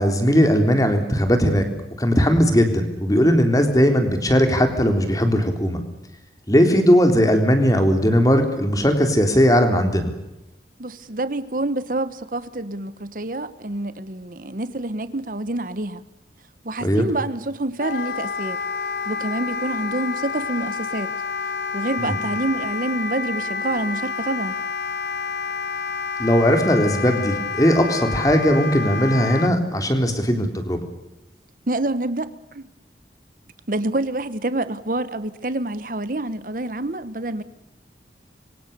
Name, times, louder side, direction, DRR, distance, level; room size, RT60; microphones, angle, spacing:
voice 1, 0.0-1.6 2.0-5.8 6.5-10.1 16.8-17.0 22.0-22.2 26.2-30.8, equal, 20° left, 3.7 m, -18 dB
voice 2, 10.8-16.0 16.6-18.6 19.0-21.1 21.7-24.5 31.7-32.6 33.7-37.4, right 2 dB, 50° right, 1.1 m, -27 dB
Wind instrument woodwind instrument, 17.8-29.5, left 4 dB, 70° left, 1.3 m, -29 dB
26.5 x 24.5 x 6.8 m
head